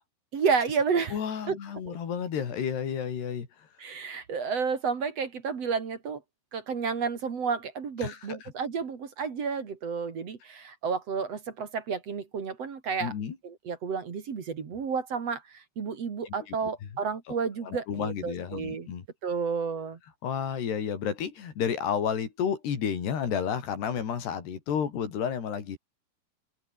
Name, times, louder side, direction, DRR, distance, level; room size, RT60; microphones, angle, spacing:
voice 1, 0.3-1.2 1.5-1.6 1.9-2.0 3.8-6.2 6.5-13.1 13.4-18.9 19.2-20.0, right 5 dB, 45° right, 3.1 m, -31 dB
voice 2, 1.1-3.7 8.0-8.2 13.0-13.4 16.3-16.7 17.3-17.4 17.6-19.1 20.2-25.8, left 7 dB, 85° left, 5.7 m, -31 dB
open air
omnidirectional pair, 4.6 m